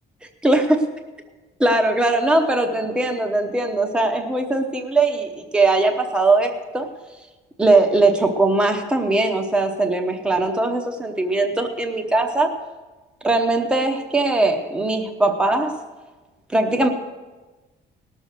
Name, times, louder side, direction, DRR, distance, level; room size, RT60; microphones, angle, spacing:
voice 1, 0.4-0.8 1.6-6.9 7.6-12.5 13.2-15.8 16.5-16.9, right 2 dB, 5° right, 3 dB, 0.8 m, -20 dB
18.5 x 6.8 x 6.4 m, 1.2 s
cardioid pair, 180°, 18 cm